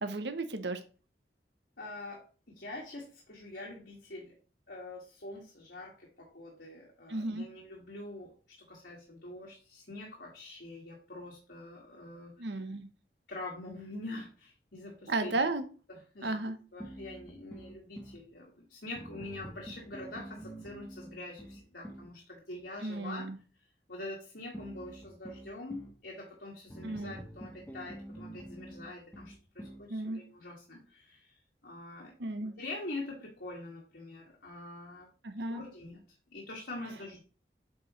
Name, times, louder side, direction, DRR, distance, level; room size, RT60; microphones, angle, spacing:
voice 1, 0.0-0.8 7.1-7.5 12.4-12.9 15.1-15.6 16.2-16.6 22.8-23.4 26.8-27.2 29.9-30.2 32.2-32.5 35.2-35.6, right 2 dB, 75° right, 8 dB, 0.9 m, -34 dB
voice 2, 1.8-2.2 2.5-4.3 4.7-12.5 13.3-15.5 15.9-16.4 16.7-23.3 23.9-32.1 32.4-35.1 35.5-36.0 36.3-37.2, left 2 dB, 70° left, -3 dB, 2.0 m, -45 dB
sound 1, 16.8-18.2 19.0-22.1 24.5-26.0 26.7-29.9, right 1 dB, 10° left, 1.1 m, -47 dB
8.2 x 5.0 x 3.1 m, 0.36 s
head